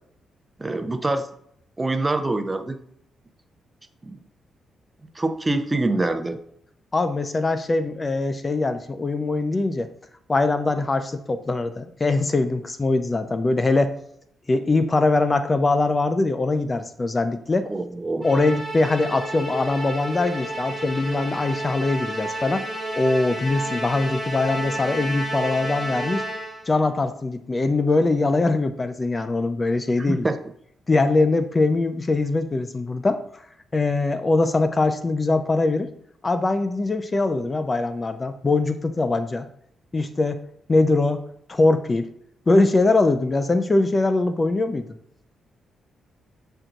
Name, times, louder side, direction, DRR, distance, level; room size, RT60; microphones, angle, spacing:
voice 1, 0.6-1.3 1.8-2.8 4.0-4.2 5.1-6.4 17.7-18.2 30.1-30.4, right 2 dB, 20° right, 8 dB, 0.7 m, -25 dB
voice 2, 6.9-9.9 10.3-13.9 14.5-17.7 18.2-22.6 22.9-26.2 26.7-30.3 30.9-33.2 33.7-35.9 36.2-39.5 39.9-40.4 40.7-41.2 41.5-42.1 42.5-44.8, left 3 dB, 30° left, 10 dB, 0.5 m, -22 dB
Musical instrument, 18.2-26.7, right 1 dB, ahead, 1.8 m, -31 dB
7.8 x 4.6 x 3.8 m, 0.69 s
cardioid pair, 85°, 0 cm